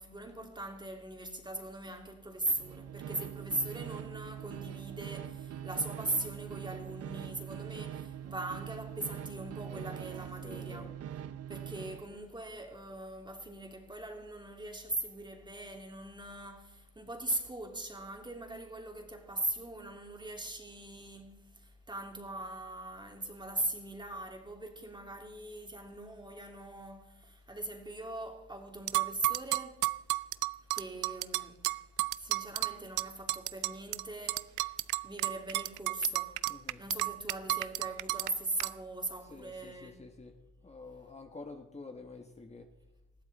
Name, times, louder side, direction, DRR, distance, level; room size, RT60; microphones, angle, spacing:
voice 1, 0.0-10.9 11.5-29.8 30.7-31.6 32.2-34.7 35.0-36.4 36.8-40.0, right 2 dB, 15° right, 3.0 m, -40 dB
sound 1, 2.5-12.1, right 10 dB, 55° right, 0.8 m, -43 dB
voice 2, 10.4-10.9 36.5-36.8 39.3-40.3 40.6-42.7, left 3 dB, 20° left, 1.3 m, -48 dB
sound 2, 28.9-34.0 34.3-38.3 38.6-38.7, right 18 dB, 80° right, 0.6 m, -32 dB
20.0 x 14.0 x 4.2 m
cardioid pair, 90°, 30 cm